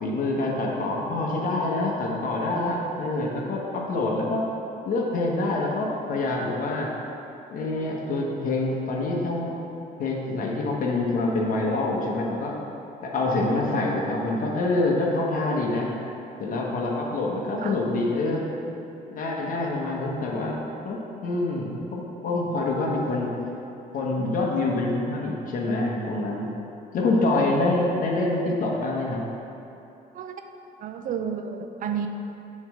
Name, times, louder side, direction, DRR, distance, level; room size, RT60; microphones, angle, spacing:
voice 1, 0.0-4.4 4.8-6.9 7.5-9.6 10.0-12.5 13.0-15.9 16.4-18.4 19.1-20.6 20.8-23.3 23.9-26.5 26.9-29.2, left 2 dB, 55° left, -2 dB, 1.2 m, -26 dB
voice 2, 30.8-32.1, right 7 dB, 55° right, 6 dB, 0.5 m, -31 dB
7.2 x 3.2 x 6.1 m, 2.9 s
cardioid pair, 110°, 17 cm